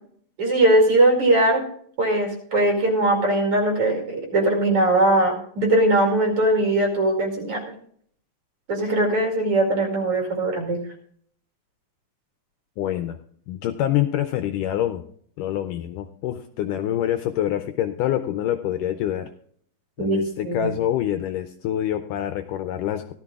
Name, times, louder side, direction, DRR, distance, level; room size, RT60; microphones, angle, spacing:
voice 1, 0.4-1.6 2.0-7.6 8.7-10.8 20.0-20.7, right 1 dB, 45° right, 1 dB, 3.0 m, -20 dB
voice 2, 12.8-13.2 13.5-15.0 15.4-19.3 20.0-23.1, left 11 dB, 80° left, 8 dB, 1.9 m, -26 dB
17.0 x 13.0 x 2.4 m, 0.62 s
omnidirectional pair, 4.2 m